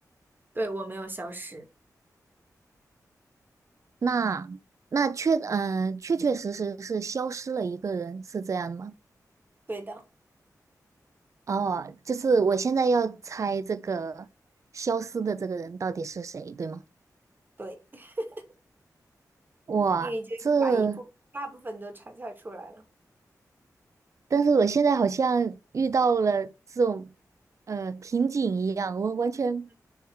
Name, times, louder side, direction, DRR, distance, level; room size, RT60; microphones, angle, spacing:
voice 1, 0.5-1.7 9.7-10.0 17.6-18.4 20.0-21.0 21.3-22.8, right 1 dB, 30° right, 2.1 m, -36 dB
voice 2, 4.0-4.6 4.9-8.9 11.5-14.3 14.7-16.8 19.7-20.1 20.4-21.0 24.3-27.1 27.7-29.7, right 5 dB, 50° right, 0.5 m, -26 dB
7.2 x 3.6 x 4.6 m
wide cardioid pair, 80°, 7 cm